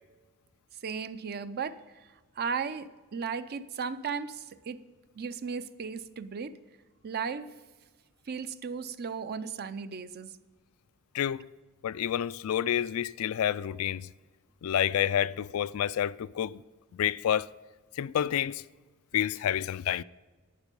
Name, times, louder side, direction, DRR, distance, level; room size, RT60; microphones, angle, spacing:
voice 1, 0.8-1.8 2.4-4.8 5.2-6.6 7.0-7.5 8.3-10.3 16.6-16.7, right 6 dB, 45° right, 0.5 m, -35 dB
voice 2, 11.1-11.5 11.8-14.1 14.6-16.6 16.9-17.5 18.0-18.6 19.1-20.0, left 10 dB, 70° left, 0.3 m, -29 dB
12.0 x 9.0 x 5.3 m
head